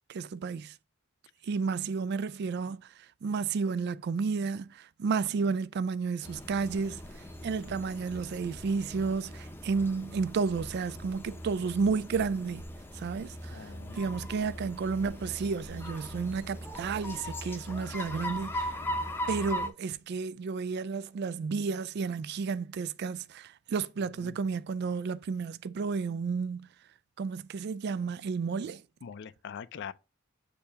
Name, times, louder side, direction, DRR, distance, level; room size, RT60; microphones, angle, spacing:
voice 1, 0.1-0.7 1.5-2.9 3.2-7.0 7.4-12.7 12.9-13.6 13.9-18.8 19.3-26.7 27.2-28.8, right 5 dB, 50° right, 0.3 m, -32 dB
sound 1, 6.2-19.7, equal, 10° left, 0.7 m, -39 dB
voice 2, 13.5-14.2 24.2-24.4 29.0-29.9, left 7 dB, 55° left, 0.4 m, -43 dB
6.7 x 2.8 x 5.5 m
head